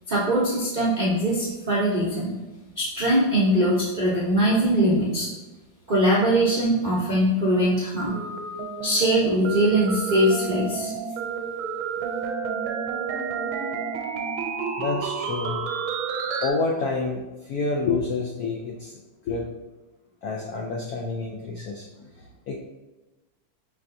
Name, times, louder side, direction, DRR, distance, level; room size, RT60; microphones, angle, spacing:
voice 1, 0.1-2.3 2.8-5.3 5.9-8.2 8.8-10.9, right 1 dB, 55° right, -6 dB, 0.5 m, -22 dB
sound 1, 8.0-16.5, right 6 dB, 80° right, 1.4 m, -30 dB
voice 2, 14.8-15.7 16.4-19.0 19.2-19.5 20.2-22.6, left 3 dB, 80° left, 0 dB, 0.8 m, -28 dB
5.7 x 3.4 x 2.6 m, 1.1 s
omnidirectional pair, 2.2 m